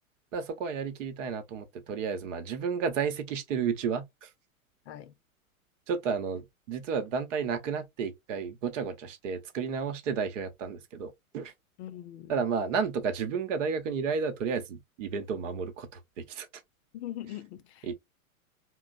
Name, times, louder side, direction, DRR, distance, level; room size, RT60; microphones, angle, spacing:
voice 1, 0.3-4.3 5.9-11.5 12.3-15.9 16.2-16.5 17.8-17.9, right 6 dB, 60° right, 0.9 m, -32 dB
voice 2, 11.8-12.4 16.9-17.9, left 13 dB, 50° left, 0.6 m, -41 dB
3.1 x 2.0 x 2.5 m
hypercardioid pair, 110°, 43 cm